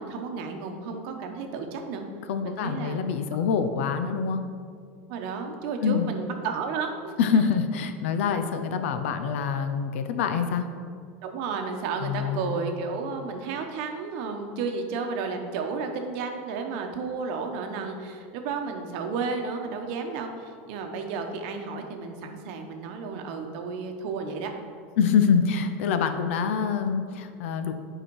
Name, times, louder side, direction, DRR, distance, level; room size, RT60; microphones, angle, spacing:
voice 1, 0.0-2.0 2.4-3.0 5.1-7.1 11.2-24.5, right 4 dB, 55° right, 4 dB, 0.9 m, -32 dB
voice 2, 2.3-4.4 5.8-6.1 7.2-10.7 12.0-12.5 25.0-27.7, left 6 dB, 80° left, 8 dB, 0.7 m, -25 dB
8.7 x 4.9 x 4.7 m, 2.1 s
supercardioid pair, 165°, 7 cm